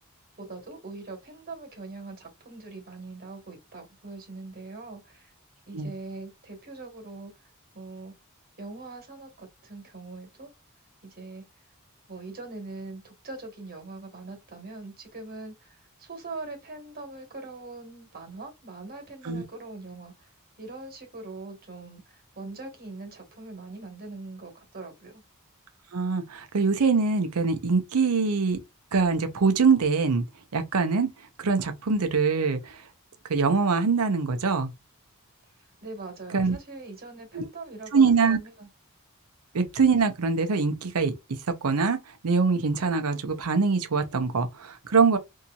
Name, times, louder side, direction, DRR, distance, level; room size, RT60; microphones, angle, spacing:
voice 1, 0.4-5.3 5.7-7.3 7.7-8.1 8.6-10.5 11.0-11.4 12.1-20.3 20.6-25.2 35.8-38.7, right 3 dB, 45° right, 1.3 m, -42 dB
voice 2, 25.9-28.6 28.9-30.2 30.5-31.1 31.4-32.8 33.3-34.7 36.3-36.6 37.3-37.5 37.9-38.4 39.5-41.1 41.6-42.0 42.2-45.2, right 4 dB, 85° right, 0.6 m, -23 dB
2.7 x 2.7 x 2.3 m
head